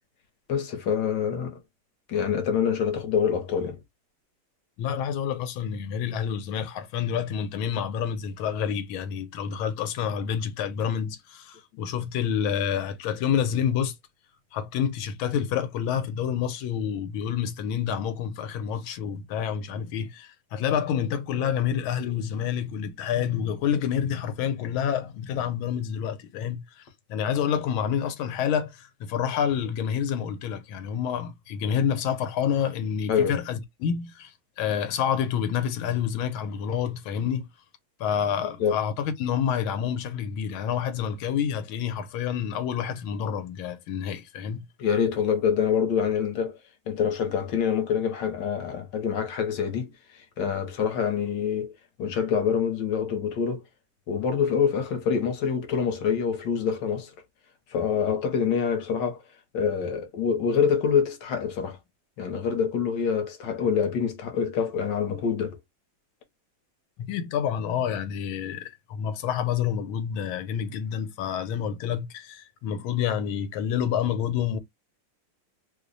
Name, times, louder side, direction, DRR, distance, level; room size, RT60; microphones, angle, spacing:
voice 1, 0.5-1.6 2.1-3.8 33.1-33.4 38.4-38.8 44.8-46.6 46.9-51.7 52.0-53.6 54.1-57.1 57.7-59.2 59.5-61.8 62.2-65.6, left 7 dB, 65° left, 1.3 m, -26 dB
voice 2, 4.8-13.9 14.5-37.5 38.0-44.6 67.0-74.6, left 8 dB, 80° left, 1.4 m, -28 dB
3.3 x 2.1 x 3.8 m
omnidirectional pair, 2.3 m